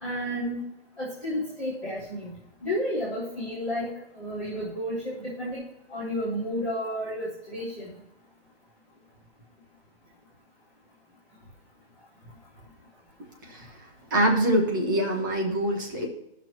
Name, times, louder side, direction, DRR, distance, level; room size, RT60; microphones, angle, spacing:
voice 1, 0.0-0.6 1.0-2.3 2.6-3.9 4.1-5.6 5.9-7.9, equal, 5° left, -14 dB, 0.7 m, -31 dB
voice 2, 14.1-16.1, right 1 dB, 20° right, 0 dB, 1.0 m, -24 dB
14.5 x 6.1 x 3.0 m, 0.86 s
hypercardioid pair, 175°, 32 cm